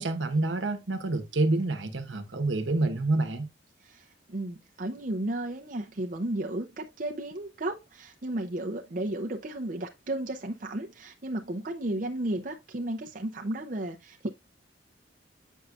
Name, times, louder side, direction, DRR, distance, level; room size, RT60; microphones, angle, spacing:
voice 1, 0.0-3.5, right 2 dB, 80° right, 1.1 m, -27 dB
voice 2, 3.8-14.3, right 1 dB, 45° right, 0.7 m, -34 dB
8.3 x 5.5 x 2.4 m
head